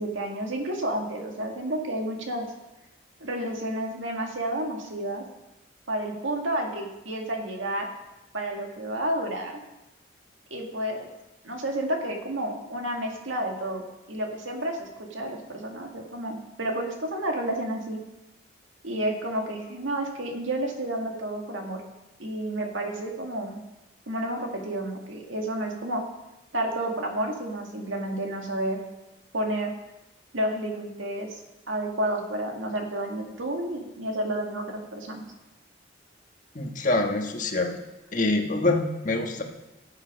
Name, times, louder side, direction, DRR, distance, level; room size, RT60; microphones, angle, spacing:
voice 1, 0.0-2.5 3.2-5.2 5.9-7.9 8.3-9.6 10.5-11.1 11.4-13.8 14.1-18.0 18.8-21.8 22.2-23.6 24.1-26.0 26.5-28.8 29.3-29.7 30.3-31.4 31.7-35.2, right 1 dB, 90° right, 2 dB, 2.1 m, -30 dB
voice 2, 36.5-37.7 38.1-39.4, left 2 dB, 40° left, 3 dB, 1.4 m, -25 dB
16.0 x 8.1 x 5.1 m, 0.98 s
head